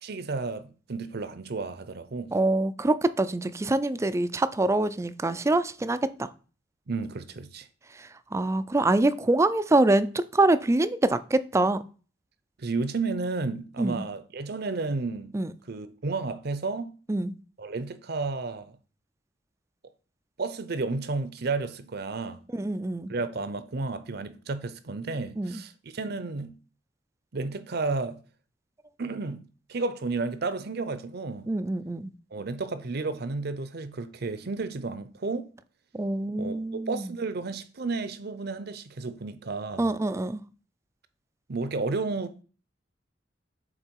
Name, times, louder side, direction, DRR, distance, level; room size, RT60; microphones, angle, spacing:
voice 1, 0.0-2.3 6.9-7.7 12.6-15.3 15.7-17.0 17.6-18.7 20.4-22.4 23.1-26.5 27.3-28.2 29.0-29.4 29.7-31.5 32.3-35.5 36.4-39.9 41.5-42.4, right 3 dB, 55° right, 0.6 m, -32 dB
voice 2, 2.3-6.3 8.0-11.8 13.8-14.0 15.3-15.5 17.1-17.3 22.5-23.1 25.4-25.6 31.5-32.1 35.9-37.1 39.8-40.4, right 2 dB, 15° right, 0.3 m, -25 dB
6.5 x 3.9 x 4.6 m
head